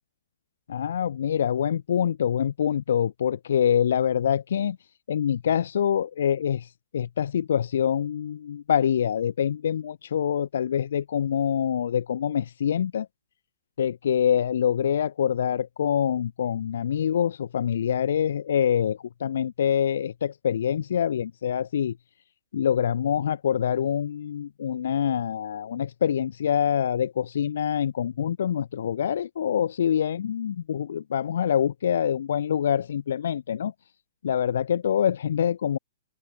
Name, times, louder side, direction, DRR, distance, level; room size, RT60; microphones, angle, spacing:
voice 1, 0.7-4.8 5.1-13.1 13.8-22.0 22.5-33.7 34.2-35.8, left 9 dB, 55° left, 4.3 m, -25 dB
open air
hypercardioid pair, 180°, 0 cm